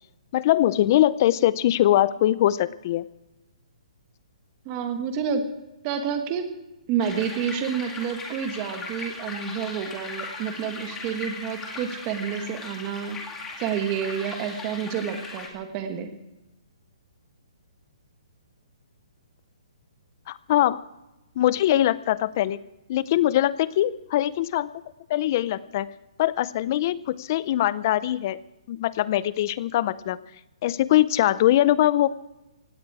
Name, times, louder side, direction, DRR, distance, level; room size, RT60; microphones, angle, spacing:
voice 1, 0.3-3.1 20.3-20.8 21.4-22.6 22.9-24.7 25.1-25.9 26.2-28.4 28.7-30.2 30.6-32.1, left 13 dB, 30° left, 19 dB, 0.5 m, -22 dB
voice 2, 4.6-5.5 5.8-6.5 6.9-13.2 13.6-16.1, right 7 dB, 20° right, 7 dB, 1.3 m, -29 dB
sound 1, 7.0-15.5, left 3 dB, 10° left, 2.0 m, -38 dB
18.5 x 16.5 x 4.8 m, 0.98 s
hypercardioid pair, 175°, 4 cm